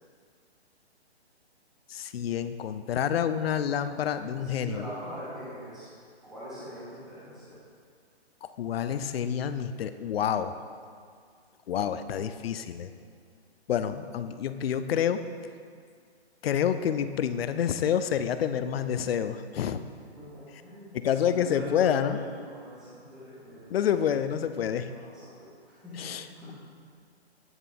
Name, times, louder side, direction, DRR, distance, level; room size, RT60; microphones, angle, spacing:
voice 1, 1.9-4.8 8.4-10.5 11.7-12.9 13.7-15.2 16.4-19.8 20.9-22.2 23.7-24.9 26.0-26.2, left 9 dB, 60° left, 11 dB, 0.4 m, -28 dB
voice 2, 4.4-5.9 6.2-7.6 20.1-23.7 24.8-26.5, equal, ahead, -10 dB, 0.4 m, -42 dB
8.9 x 6.5 x 2.5 m, 2.1 s
hypercardioid pair, 145°, 33 cm